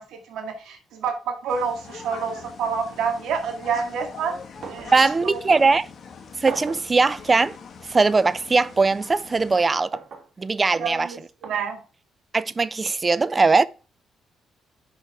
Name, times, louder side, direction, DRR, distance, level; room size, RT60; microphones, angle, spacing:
voice 1, 0.0-4.4 4.7-5.7 10.8-11.8, right 6 dB, 80° right, 2.0 m, -28 dB
sound 1, 1.5-9.6, left 5 dB, 50° left, 1.4 m, -43 dB
sound 2, 4.6-5.0 5.3-5.4 6.5-6.9 8.0-8.2 9.9-10.3 11.4-11.6 12.9-13.0, right 5 dB, 55° right, 1.8 m, -37 dB
voice 2, 4.9-5.9 6.4-7.6 7.9-10.0 10.4-11.1 12.3-13.7, right 4 dB, 30° right, 0.4 m, -20 dB
6.6 x 5.1 x 4.4 m
cardioid pair, 90°, 0 cm